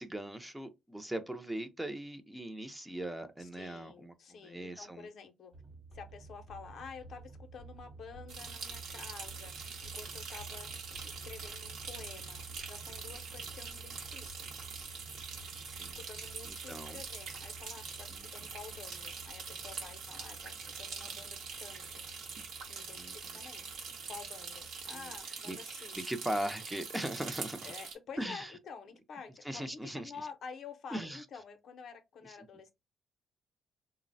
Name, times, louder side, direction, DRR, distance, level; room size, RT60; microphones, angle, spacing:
voice 1, 0.0-4.1 4.4-5.1 15.4-16.0 16.4-17.0 18.1-18.3 22.9-23.4 24.9-25.6 26.0-27.7 28.2-28.5 29.4-30.1 30.9-31.2, right 1 dB, 10° right, 0.4 m, -40 dB
voice 2, 3.4-5.5 5.9-9.5 9.8-10.7 11.0-14.5 15.9-22.0 22.7-23.7 24.1-26.1 27.6-32.7, left 6 dB, 65° left, 0.6 m, -50 dB
sound 1, 5.5-25.2, right 3 dB, 40° right, 0.7 m, -52 dB
sound 2, 8.3-27.9, right 5 dB, 80° right, 0.8 m, -44 dB
3.1 x 2.0 x 2.6 m
cardioid pair, 90°, 0 cm